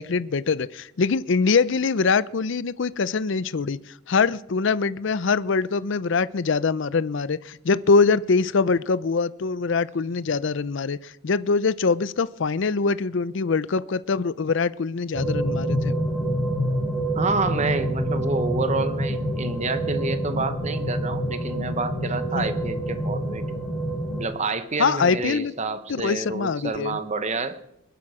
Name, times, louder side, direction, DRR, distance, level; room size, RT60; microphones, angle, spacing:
voice 1, 0.0-15.9 22.3-22.5 24.8-25.5 25.9-27.0, left 4 dB, 60° left, 17 dB, 0.5 m, -23 dB
sound 1, 15.1-24.2, right 1 dB, 5° right, 3.8 m, -27 dB
voice 2, 17.1-23.4 24.2-27.6, right 3 dB, 35° right, 10 dB, 1.0 m, -28 dB
21.5 x 11.5 x 4.9 m, 0.82 s
head